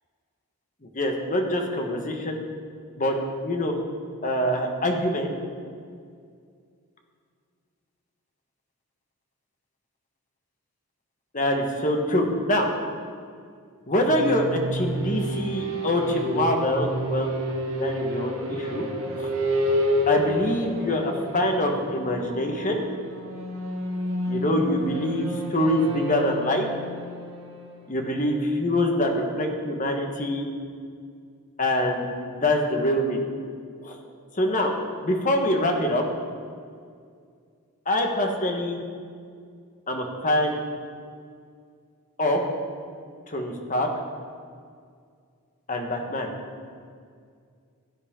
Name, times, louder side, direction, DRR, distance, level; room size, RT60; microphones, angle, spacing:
voice 1, 0.9-2.4 2.9-3.2 3.4-3.8 4.2-5.3 11.3-12.7 13.9-17.3 17.7-18.9 19.2-19.3 20.1-22.8 24.3-26.7 27.9-30.5 31.6-33.2 33.8-34.0 34.3-34.7 35.0-36.1 37.8-38.8 39.9-40.6 42.2-42.4 43.3-43.9 45.7-46.3, left 1 dB, 35° left, 2 dB, 1.4 m, -25 dB
sound 1, 13.9-28.5, equal, 70° right, 2.0 m, -30 dB
17.0 x 9.9 x 3.8 m, 2.2 s
head